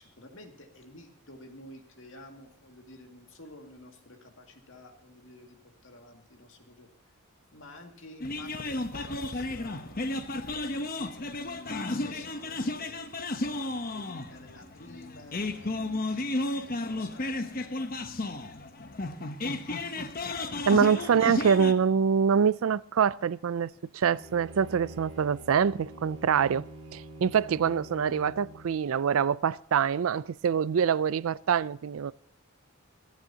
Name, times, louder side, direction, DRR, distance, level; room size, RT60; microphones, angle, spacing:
voice 1, 0.0-6.9 7.5-13.0 13.3-17.6 21.0-21.2, left 1 dB, 65° left, 2.2 m, -51 dB
sound 1, 8.2-21.7, left 2 dB, 45° left, 0.9 m, -33 dB
voice 2, 20.7-26.7 26.9-32.1, right 7 dB, 85° right, 0.4 m, -25 dB
Bowed string instrument, 24.1-28.9, right 1 dB, 25° right, 5.8 m, -46 dB
26.5 x 9.5 x 2.8 m
head